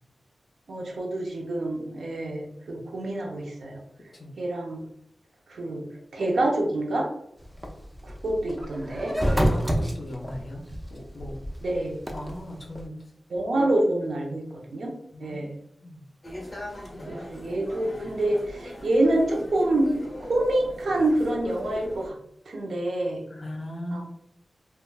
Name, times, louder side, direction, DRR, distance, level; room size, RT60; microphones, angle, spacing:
voice 1, 0.7-3.8 4.4-4.8 5.5-5.9 6.1-7.1 8.0-9.1 11.6-12.0 13.3-14.9 15.2-15.5 17.1-19.9 20.3-22.2 22.5-23.2 23.9-24.0, right 1 dB, 75° right, 0 dB, 0.5 m, -26 dB
sound 1, 7.4-12.8, equal, 10° right, 0.4 m, -28 dB
voice 2, 9.5-10.6 10.9-11.4 12.1-13.1 15.1-15.5 15.8-16.0 16.9-17.2 23.3-24.0, left 1 dB, 50° left, -2 dB, 0.5 m, -38 dB
sound 2, 16.2-22.1, left 1 dB, 25° left, 0.9 m, -40 dB
3.2 x 2.2 x 2.3 m, 0.75 s
wide cardioid pair, 105°, 0 cm